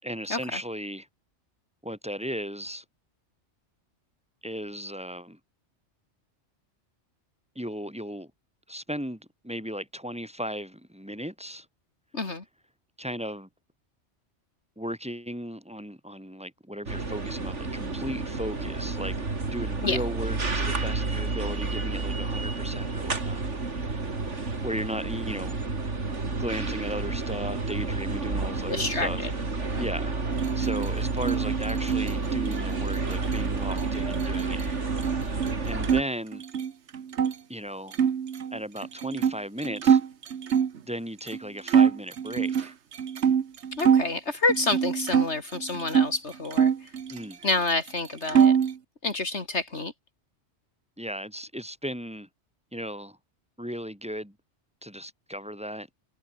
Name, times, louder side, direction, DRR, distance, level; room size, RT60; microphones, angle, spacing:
voice 1, 0.0-1.1 1.8-2.8 4.4-5.4 7.5-8.3 8.7-11.7 13.0-13.5 14.8-24.0 24.6-25.6 26.3-29.3 29.8-34.9 35.6-36.4 37.5-38.0 38.5-40.0 40.8-42.7 47.1-47.4 51.0-52.3 52.7-53.2 53.6-54.4 54.8-55.9, equal, 5° right, 4.9 m, -36 dB
voice 2, 12.1-12.4 19.8-20.0 28.7-29.3 29.8-29.9 43.8-46.9 47.4-48.5 49.0-49.9, left 3 dB, 70° left, 3.2 m, -28 dB
sound 1, 16.9-36.0, right 3 dB, 90° right, 3.3 m, -30 dB
sound 2, 30.3-36.0 36.3-37.3 37.9-40.8 41.3-41.4 41.7-44.1 44.5-46.1 46.5-47.6 47.9-48.8, right 7 dB, 75° right, 1.4 m, -25 dB
omnidirectional pair, 1.2 m